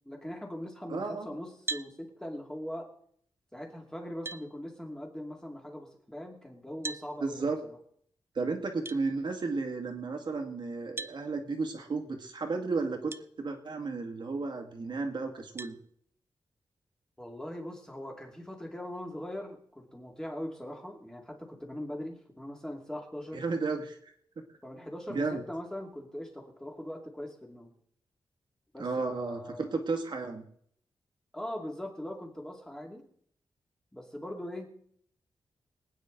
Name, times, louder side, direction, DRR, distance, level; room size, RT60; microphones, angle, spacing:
voice 1, 0.0-2.9 3.5-7.8 17.2-23.4 24.6-27.7 28.7-29.8 31.3-33.0 33.9-34.7, left 1 dB, 5° left, 1 dB, 2.5 m, -41 dB
voice 2, 0.9-1.3 7.2-7.6 8.3-15.8 23.3-24.4 25.1-25.4 28.8-30.4, right 4 dB, 55° right, 4 dB, 2.1 m, -33 dB
sound 1, 1.7-1.9 3.6-3.7 4.2-4.5 6.8-7.1 8.8-9.0 11.0-11.2 13.1-13.2 13.9-14.0 15.6-15.8, right 3 dB, 25° right, 0.5 m, -37 dB
23.5 x 9.3 x 3.9 m, 0.65 s
wide cardioid pair, 140°, 9 cm